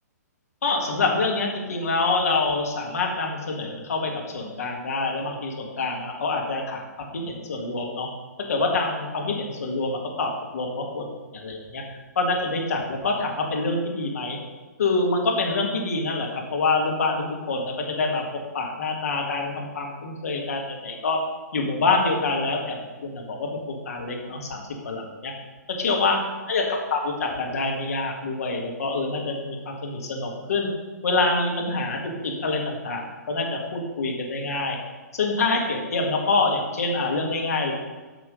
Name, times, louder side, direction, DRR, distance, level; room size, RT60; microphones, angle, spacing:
voice 1, 0.6-8.1 8.5-11.1 11.3-11.8 12.2-14.4 14.8-18.2 18.5-21.2 21.5-25.3 25.8-26.2 26.5-26.6 26.9-30.7 31.0-34.8 35.1-37.7, left 3 dB, 60° left, 1 dB, 2.0 m, -26 dB
9.4 x 6.0 x 5.3 m, 1.3 s
figure-of-eight pair, 120°, 9 cm